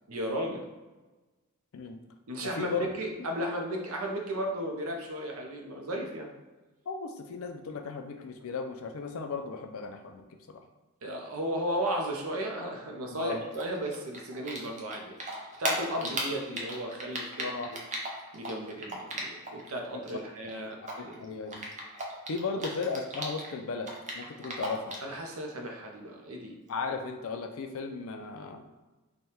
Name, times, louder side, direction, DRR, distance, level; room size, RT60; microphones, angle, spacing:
voice 1, 0.1-0.6 2.3-6.3 11.0-15.2 15.6-17.8 18.3-21.3 25.0-26.6, right 1 dB, 70° right, 2 dB, 0.7 m, -35 dB
voice 2, 2.4-2.9 6.9-10.2 10.5-10.6 13.1-13.4 16.0-16.1 16.4-16.6 17.4-17.7 20.1-20.2 20.8-21.7 22.3-25.0 26.7-28.6, left 4 dB, 65° left, 6 dB, 0.4 m, -36 dB
Typing, 13.5-14.9 15.2-19.7 19.9-23.5 23.8-25.1, right 1 dB, 30° right, 0.6 m, -36 dB
3.3 x 2.3 x 4.2 m, 1.2 s
head